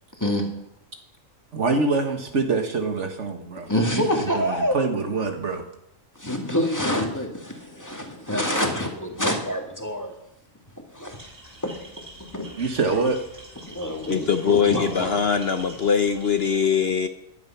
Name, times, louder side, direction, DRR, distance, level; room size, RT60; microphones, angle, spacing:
voice 1, 1.5-5.6 12.6-13.2, right 3 dB, 60° right, 5 dB, 1.8 m, -25 dB
voice 2, 3.7-4.8 6.2-10.1 10.9-11.2 11.6-11.7 12.3-12.5 13.7-15.2, left 1 dB, 15° left, 2 dB, 2.2 m, -26 dB
sound 1, 11.1-16.6, right 1 dB, 30° right, 6.2 m, -45 dB
voice 3, 14.1-17.1, left 7 dB, 55° left, 8 dB, 1.0 m, -22 dB
15.0 x 11.0 x 5.8 m, 0.83 s
omnidirectional pair, 1.4 m